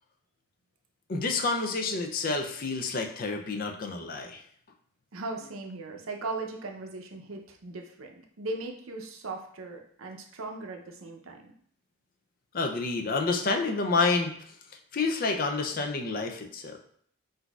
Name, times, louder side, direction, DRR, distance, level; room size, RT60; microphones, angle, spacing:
voice 1, 1.1-4.4 12.5-14.3 14.9-16.8, left 3 dB, 40° left, 4 dB, 0.4 m, -29 dB
voice 2, 5.1-11.5, right 3 dB, 75° right, 3 dB, 0.6 m, -38 dB
5.9 x 2.6 x 2.3 m, 0.63 s
head